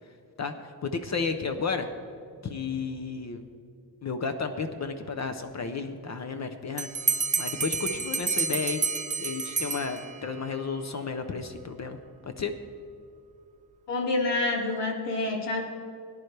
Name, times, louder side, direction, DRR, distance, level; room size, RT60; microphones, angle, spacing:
voice 1, 0.4-1.9 2.4-3.4 4.0-6.9 7.4-8.9 9.2-12.5, left 5 dB, 40° left, 7 dB, 0.6 m, -32 dB
Bell, 6.8-10.4, right 5 dB, 20° right, 0.3 m, -29 dB
voice 2, 13.9-15.6, left 2 dB, 75° left, 0 dB, 2.1 m, -27 dB
18.0 x 10.5 x 3.3 m, 2.4 s
wide cardioid pair, 180°, 43 cm